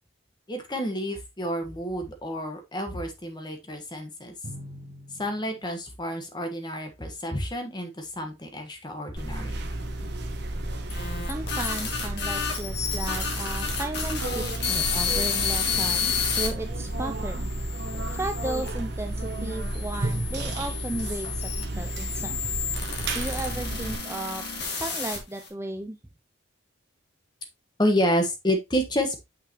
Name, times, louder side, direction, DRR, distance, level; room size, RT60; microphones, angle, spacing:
voice 1, 0.5-4.3 5.2-9.6 27.8-29.2, equal, 20° left, 5 dB, 1.3 m, -29 dB
Drum, 4.4-6.8, equal, 30° right, 1.4 m, -45 dB
sound 1, 9.2-24.0, right 1 dB, 55° right, 1.2 m, -32 dB
sound 2, 10.7-16.5 17.1-18.7 19.5-25.5, left 6 dB, 55° left, 2.1 m, -31 dB
voice 2, 11.3-17.5 18.1-22.6 23.1-26.0, right 2 dB, 10° right, 6 dB, 0.4 m, -35 dB
6.7 x 5.9 x 2.9 m, 0.22 s
head